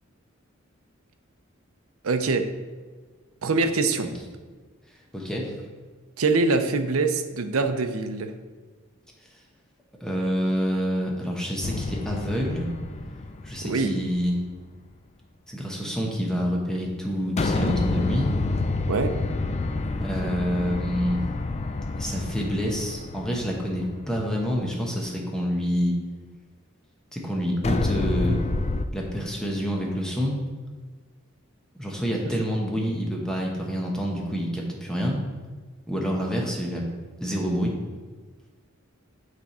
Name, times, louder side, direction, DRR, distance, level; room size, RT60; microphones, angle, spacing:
voice 1, 2.0-2.5 3.4-4.1 6.2-8.3 13.6-13.9 18.9-19.1, right 3 dB, 80° right, 8 dB, 0.6 m, -24 dB
voice 2, 5.1-5.5 10.0-12.7 13.4-14.4 15.5-18.3 20.0-21.2 22.0-26.0 27.1-28.4 28.9-30.4 31.7-35.2 35.9-36.8 37.2-37.8, equal, 5° left, -2 dB, 0.9 m, -27 dB
sound 1, 11.6-14.2 17.4-24.6 27.6-28.8, left 3 dB, 30° left, 0.4 m, -28 dB
9.0 x 3.5 x 4.2 m, 1.4 s
head